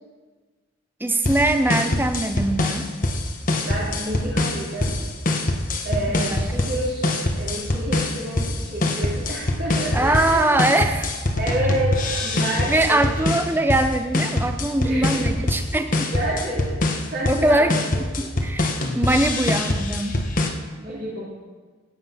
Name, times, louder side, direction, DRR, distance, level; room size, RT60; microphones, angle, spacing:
voice 1, 1.0-2.9 6.1-6.4 9.9-11.1 12.7-16.1 17.3-20.2, right 1 dB, 10° right, 8 dB, 0.7 m, -22 dB
sound 1, 1.3-20.5, left 2 dB, 40° left, 1.2 m, -24 dB
voice 2, 3.6-5.0 5.8-10.6 11.4-13.1 14.8-15.4 16.1-16.8 17.1-17.8 18.2-18.3 20.7-21.2, right 1 dB, 55° right, -7 dB, 3.2 m, -29 dB
16.0 x 7.7 x 5.8 m, 1.4 s
head